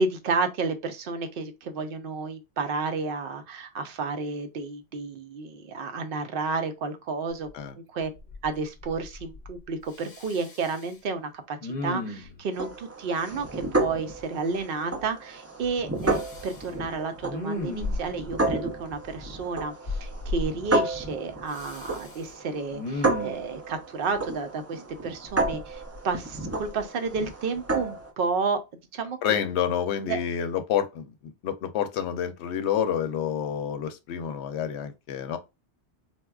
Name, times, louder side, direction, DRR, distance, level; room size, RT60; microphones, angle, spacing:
voice 1, 0.0-7.5 7.8-8.1 8.4-28.6 28.9-29.2 30.1-30.2, right 4 dB, 60° right, 0.8 m, -31 dB
Respiratory sounds, 7.5-7.6 8.0-8.6 8.8-9.6 9.9-10.9 11.6-12.4 16.0-16.7 17.2-18.3 19.9-20.5 21.5-22.2 22.7-23.5 25.3-26.2 26.6-26.8, left 2 dB, 45° left, 0.8 m, -35 dB
sound 1, 12.5-28.1, right 2 dB, 20° right, 0.4 m, -32 dB
voice 2, 29.2-35.4, left 9 dB, 80° left, 0.8 m, -28 dB
4.2 x 2.3 x 2.3 m
omnidirectional pair, 1.2 m